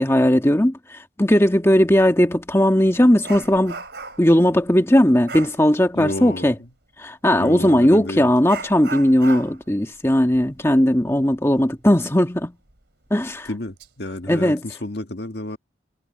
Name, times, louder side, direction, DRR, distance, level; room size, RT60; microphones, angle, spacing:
voice 1, 0.0-3.8 4.2-6.5 7.0-12.5 13.1-13.5 14.3-14.6, left 1 dB, 15° left, 1.5 m, -17 dB
Dog, 1.9-2.1 2.5-4.4 5.3-5.6 7.6-7.8 8.5-11.8 12.1-12.2 12.7-12.8 13.5-13.9 14.2-14.5, right 4 dB, 75° right, 2.9 m, -37 dB
voice 2, 5.9-6.5 7.4-8.3 13.5-15.6, left 1 dB, 65° left, 1.7 m, -30 dB
head